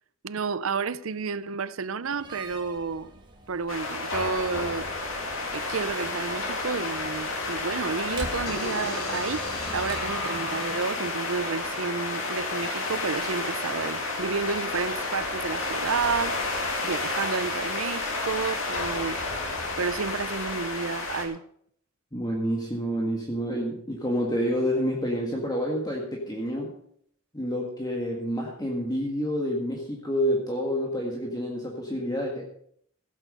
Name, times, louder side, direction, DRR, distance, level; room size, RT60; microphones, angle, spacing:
voice 1, 0.2-3.2 3.5-4.9 5.5-9.4 9.7-16.4 16.8-19.5 19.8-21.4, right 5 dB, 70° right, 0.6 m, -31 dB
Slam, 2.0-10.4, right 1 dB, 20° right, 1.7 m, -45 dB
sound 1, 3.7-21.2, left 3 dB, 65° left, 2.7 m, -31 dB
sound 2, 8.5-12.4, left 1 dB, 85° left, 4.4 m, -36 dB
voice 2, 22.1-26.8 27.3-32.4, equal, 20° left, 1.8 m, -28 dB
15.5 x 8.4 x 5.4 m
head